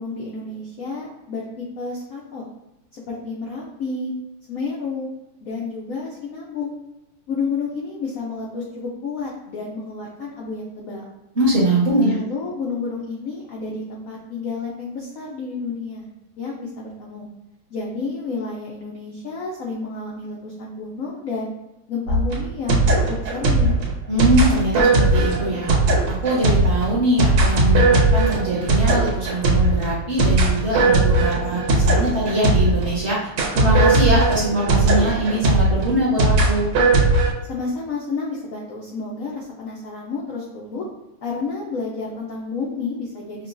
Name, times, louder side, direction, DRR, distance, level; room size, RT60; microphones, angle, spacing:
voice 1, 0.0-2.4 2.9-4.1 4.5-5.1 5.4-6.8 7.3-11.0 12.0-16.1 16.4-17.3 17.7-21.5 21.9-23.8 37.5-40.8 41.2-43.5, left 4 dB, 85° left, -3 dB, 0.7 m, -30 dB
voice 2, 11.3-12.2 24.1-25.7 26.2-33.2 33.5-36.7, right 1 dB, 40° right, -6 dB, 1.1 m, -22 dB
sound 1, 22.1-32.9 33.4-37.3, right 2 dB, 80° right, 1.8 m, -18 dB
5.8 x 2.2 x 2.5 m, 0.96 s
omnidirectional pair, 2.3 m